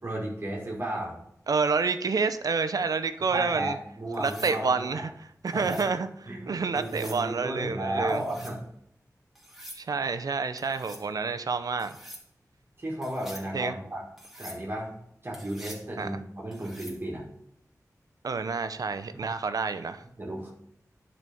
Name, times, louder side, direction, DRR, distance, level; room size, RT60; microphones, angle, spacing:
voice 1, 0.0-1.2 3.3-5.0 5.5-5.8 6.3-8.6 12.8-14.0 14.4-14.9 15.2-17.2 19.1-19.3 20.2-20.5, right 1 dB, 40° right, -3 dB, 1.6 m, -34 dB
voice 2, 1.5-3.8 4.2-8.2 9.8-12.0 13.5-13.8 16.0-16.2 18.2-20.0, right 4 dB, 75° right, 11 dB, 0.5 m, -29 dB
sound 1, 4.1-4.6 5.5-5.9 6.8-7.2 8.1-8.6 9.4-9.8 10.6-11.1 11.8-12.2 13.0-13.5 14.2-14.6 15.3-15.9 16.5-17.0 18.9-19.2, equal, 5° right, 1.8 m, -46 dB
10.5 x 4.0 x 3.5 m, 0.75 s
wide cardioid pair, 85°, 6 cm